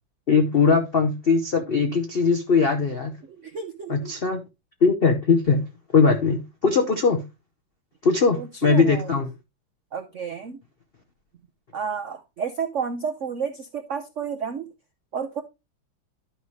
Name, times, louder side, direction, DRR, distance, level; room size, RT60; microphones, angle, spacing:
voice 1, 0.3-3.1 3.9-4.4 4.8-5.6 5.9-7.2 8.0-9.3, left 5 dB, 70° left, 0.5 m, -20 dB
voice 2, 3.3-4.1 8.4-9.1 9.9-10.6 11.7-14.7 15.1-15.4, right 6 dB, 70° right, 0.7 m, -31 dB
11.5 x 5.5 x 3.1 m
omnidirectional pair, 2.3 m